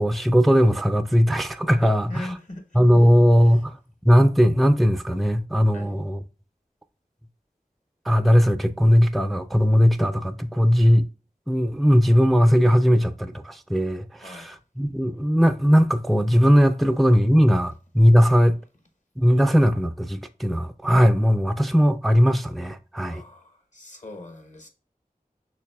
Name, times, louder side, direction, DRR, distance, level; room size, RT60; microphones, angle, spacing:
voice 1, 0.0-2.3 2.8-3.8 4.0-6.2 8.1-11.1 11.5-18.6 19.2-23.2, equal, ahead, 0.4 m, -19 dB
voice 2, 2.1-2.8 3.4-3.6 5.7-6.0 14.2-14.5 23.1-24.7, left 1 dB, 50° left, 1.0 m, -40 dB
5.8 x 3.2 x 2.2 m
wide cardioid pair, 40°, 16 cm